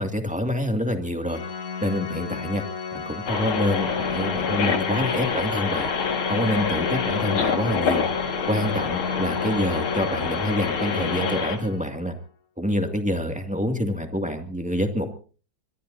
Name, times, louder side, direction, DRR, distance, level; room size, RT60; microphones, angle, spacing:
voice 1, 0.0-1.4 1.8-2.6 2.9-5.9 6.3-8.0 8.5-12.1 12.6-15.1, equal, 5° right, 4 dB, 2.0 m, -27 dB
Organ, 1.3-12.1, left 6 dB, 45° left, 1.7 m, -33 dB
sound 1, 3.3-11.6, left 5 dB, 75° left, 2.7 m, -27 dB
24.5 x 21.5 x 2.7 m, 0.41 s
omnidirectional pair, 2.3 m